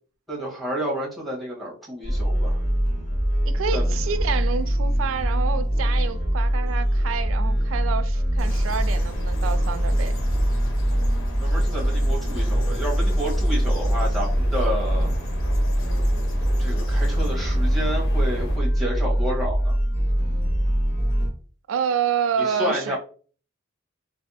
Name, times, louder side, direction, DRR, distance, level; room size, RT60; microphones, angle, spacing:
voice 1, 0.3-2.6 3.7-3.8 11.4-15.1 16.6-19.7 22.4-23.0, equal, ahead, 1.1 m, -30 dB
sound 1, 2.0-21.3, equal, 50° left, 1.0 m, -23 dB
voice 2, 3.4-10.1 21.7-23.0, right 7 dB, 75° right, 0.4 m, -28 dB
sound 2, 8.4-18.6, equal, 90° left, 0.8 m, -32 dB
3.4 x 2.0 x 2.7 m
head